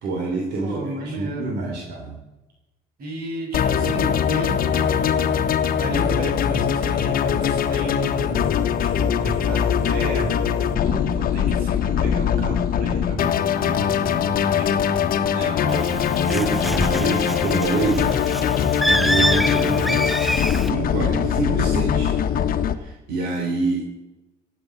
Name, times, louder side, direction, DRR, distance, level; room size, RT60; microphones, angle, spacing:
voice 1, 0.0-2.2 15.3-15.9 16.3-18.1 18.6-22.2 22.7-23.8, right 3 dB, 80° right, 0 dB, 3.3 m, -27 dB
voice 2, 0.6-1.6 3.0-5.5 5.8-8.5 9.0-14.7, right 2 dB, 60° right, 1 dB, 6.6 m, -33 dB
sound 1, 3.5-22.7, left 8 dB, 60° left, 1.4 m, -22 dB
Bird, 15.7-20.7, equal, ahead, 0.4 m, -26 dB
16.5 x 8.1 x 9.7 m, 1.0 s
cardioid pair, 110°, 17 cm